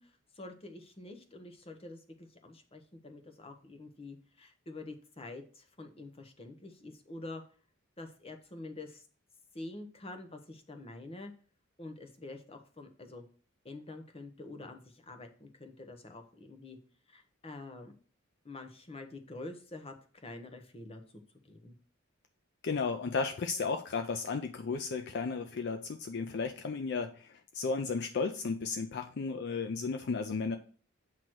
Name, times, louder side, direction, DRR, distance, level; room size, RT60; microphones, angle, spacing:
voice 1, 0.0-7.4 8.0-9.0 9.5-11.3 11.8-13.3 13.6-16.8 17.1-18.0 18.4-19.9 20.2-21.0 21.4-21.7, left 2 dB, 30° left, 6 dB, 0.9 m, -47 dB
voice 2, 22.6-30.6, left 4 dB, 55° left, 6 dB, 0.4 m, -34 dB
7.8 x 3.0 x 6.0 m, 0.41 s
head